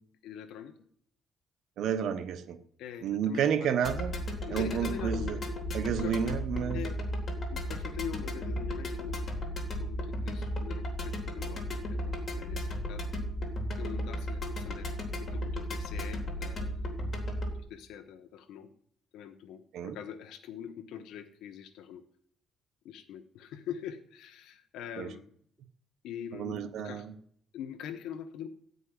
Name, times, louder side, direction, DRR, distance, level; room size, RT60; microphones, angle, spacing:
voice 1, 0.2-0.7 2.8-3.7 4.5-5.5 6.0-6.2 6.7-7.0 7.5-9.4 9.8-13.1 13.8-14.9 15.3-16.8 17.7-18.7 19.1-22.0 22.8-25.3 26.0-27.1 27.5-28.5, left 9 dB, 85° left, 6 dB, 1.1 m, -43 dB
voice 2, 1.8-2.6 3.0-4.2 4.5-5.4 5.7-6.8 19.7-20.0 25.0-25.1 26.3-27.1, right 8 dB, 65° right, 8 dB, 1.0 m, -31 dB
sound 1, 3.8-17.6, equal, 35° left, 3.1 m, -35 dB
16.0 x 5.4 x 9.7 m, 0.64 s
cardioid pair, 140°, 0 cm